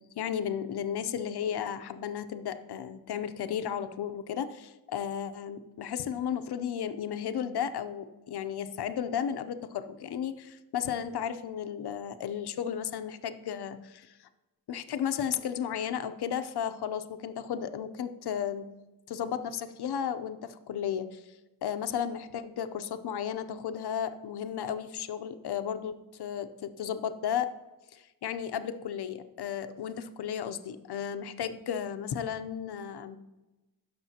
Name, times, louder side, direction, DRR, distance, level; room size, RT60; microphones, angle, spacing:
voice 1, 0.2-14.3 14.7-18.7 19.1-21.3 21.6-27.5 27.9-33.2, left 8 dB, 85° left, 10 dB, 0.7 m, -34 dB
16.0 x 6.7 x 2.8 m, 1.1 s
wide cardioid pair, 120°, 38 cm